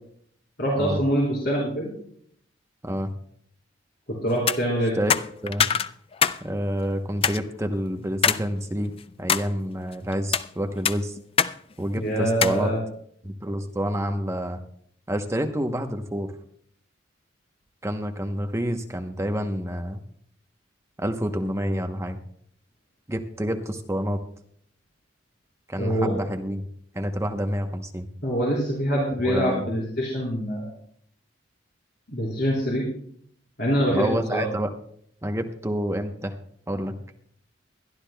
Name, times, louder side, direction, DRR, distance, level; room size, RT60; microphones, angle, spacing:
voice 1, 0.6-1.9 4.2-4.9 12.0-12.8 25.8-26.1 28.2-30.7 32.1-32.8 33.6-34.4, equal, 55° left, -6 dB, 3.9 m, -24 dB
sound 1, 4.3-4.6 5.1-6.4 6.7-6.8 7.2-7.4 8.2-8.4 8.9-9.5 10.1-10.5 10.8-11.5 11.8-11.9 12.4-12.6, left 7 dB, 30° left, 0.4 m, -23 dB
voice 2, 6.4-8.9 9.2-11.2 11.8-12.7 13.2-14.6 15.1-16.3 17.8-20.0 21.0-22.2 23.1-24.2 25.7-26.6 26.9-28.1 29.2-29.7 33.9-34.7 35.2-36.3 36.7-36.9, equal, 15° right, 5 dB, 0.9 m, -28 dB
22.0 x 12.5 x 2.3 m, 0.63 s
head